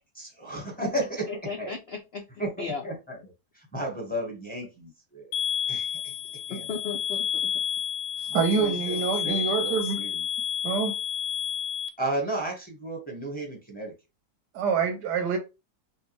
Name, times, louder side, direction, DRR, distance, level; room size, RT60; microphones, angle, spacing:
voice 1, 0.1-1.3 1.6-1.7 2.4-2.5 2.8-3.2 3.5-5.4 5.7-6.1 6.5-6.6 8.3-10.2 12.0-13.9, right 1 dB, 5° left, 1.0 m, -34 dB
voice 2, 1.3-2.8 6.5-7.5 8.6-8.8, left 5 dB, 65° left, 0.6 m, -36 dB
sound 1, 5.3-11.9, left 8 dB, 85° left, 1.2 m, -30 dB
voice 3, 8.3-10.0 10.6-11.0 14.5-15.4, right 6 dB, 80° right, 1.5 m, -26 dB
5.1 x 2.1 x 3.1 m
omnidirectional pair, 1.7 m